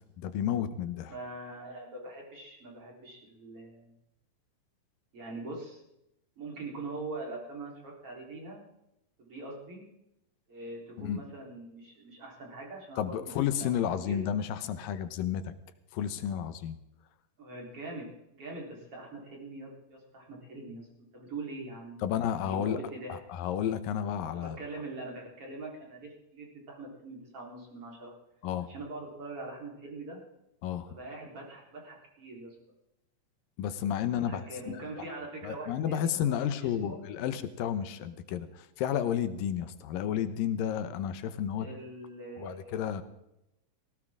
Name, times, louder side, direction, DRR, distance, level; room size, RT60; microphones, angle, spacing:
voice 1, 0.2-1.1 11.0-11.2 13.0-15.5 15.9-16.8 22.0-22.8 23.1-24.6 28.4-28.7 30.6-30.9 33.6-35.0 35.4-41.7 42.4-43.0, left 9 dB, 90° left, 11 dB, 2.7 m, -32 dB
voice 2, 1.0-3.9 5.1-5.8 6.4-8.6 9.2-9.8 10.5-14.2 17.4-18.1 18.3-20.9 21.1-22.0 22.3-23.2 24.3-28.1 28.7-30.2 30.8-32.6 34.1-37.0 41.5-42.9, right 2 dB, 40° right, -2 dB, 4.7 m, -43 dB
18.0 x 18.0 x 3.7 m, 0.85 s
omnidirectional pair, 3.9 m